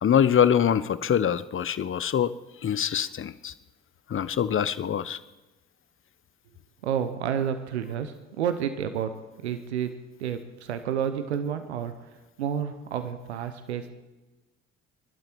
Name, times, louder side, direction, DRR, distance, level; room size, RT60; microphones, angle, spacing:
voice 1, 0.0-2.3 2.6-3.5 4.1-5.2, left 8 dB, 40° left, 16 dB, 0.9 m, -24 dB
voice 2, 6.8-9.1 9.4-9.9 10.2-11.9 12.4-13.9, right 8 dB, 90° right, 10 dB, 0.9 m, -30 dB
23.0 x 12.0 x 4.6 m, 1.1 s
hypercardioid pair, 50°, 32 cm